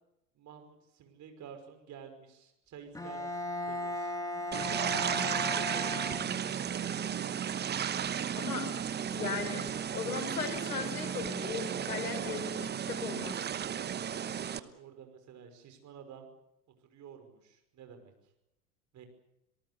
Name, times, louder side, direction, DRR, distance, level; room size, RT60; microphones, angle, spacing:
voice 1, 0.3-4.2 5.4-7.1 13.4-16.3 16.9-18.1 18.9-19.1, right 7 dB, 40° right, 7 dB, 5.5 m, -51 dB
Bowed string instrument, 3.0-6.7, left 1 dB, 5° left, 3.0 m, -37 dB
sound 1, 4.5-14.6, right 8 dB, 20° right, 1.1 m, -34 dB
voice 2, 8.4-8.7 9.1-9.7 9.9-13.4, left 5 dB, 70° left, 4 dB, 5.5 m, -37 dB
27.0 x 18.5 x 6.8 m, 0.85 s
figure-of-eight pair, 80°, 46 cm